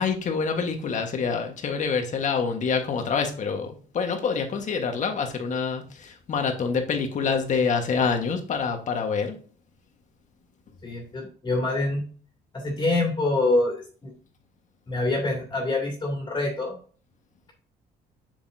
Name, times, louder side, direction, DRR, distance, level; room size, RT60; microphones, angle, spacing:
voice 1, 0.0-9.4, left 5 dB, 45° left, 1.5 m, -26 dB
voice 2, 10.8-12.0 12.5-14.1 14.9-16.8, left 2 dB, 25° left, 2.7 m, -26 dB
7.4 x 7.0 x 2.8 m
cardioid pair, 110°, 17 cm